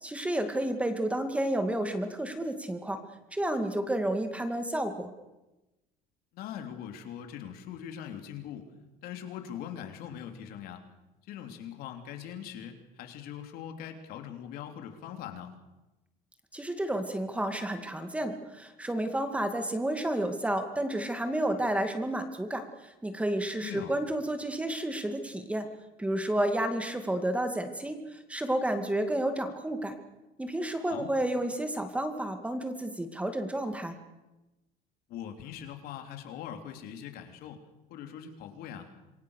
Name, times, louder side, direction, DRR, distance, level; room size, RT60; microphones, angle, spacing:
voice 1, 0.0-3.0 3.3-5.1 16.5-25.7 26.0-29.9 30.4-33.9, right 1 dB, 5° right, 7 dB, 2.3 m, -31 dB
voice 2, 6.3-8.7 9.0-10.8 11.3-15.5 23.6-23.9 30.8-31.1 35.1-37.6 37.9-38.9, left 9 dB, 65° left, 5 dB, 3.4 m, -41 dB
27.5 x 23.0 x 6.6 m, 1.0 s
cardioid pair, 140°, 17 cm